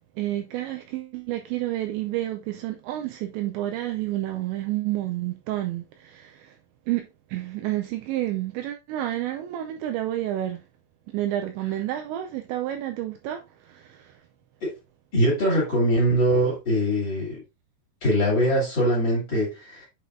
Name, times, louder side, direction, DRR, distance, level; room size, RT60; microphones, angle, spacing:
voice 1, 0.2-6.6 6.9-10.6 11.1-14.2, right 14 dB, 85° right, 2.7 m, -30 dB
voice 2, 15.1-17.4 18.0-19.9, equal, 30° left, 2.9 m, -22 dB
7.7 x 5.0 x 2.6 m
omnidirectional pair, 5.6 m